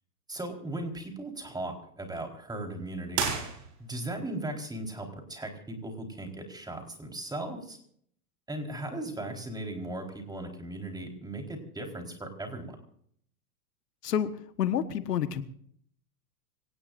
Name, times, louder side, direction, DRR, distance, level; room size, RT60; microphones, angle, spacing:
voice 1, 0.3-3.3 3.8-7.8 8.5-12.8, right 1 dB, 10° right, 3 dB, 4.3 m, -37 dB
sound 1, 3.1-4.1, right 6 dB, 35° right, 6.1 m, -32 dB
voice 2, 14.6-15.4, left 9 dB, 85° left, 11 dB, 1.5 m, -28 dB
26.0 x 18.5 x 2.6 m, 0.64 s
hypercardioid pair, 115°, 47 cm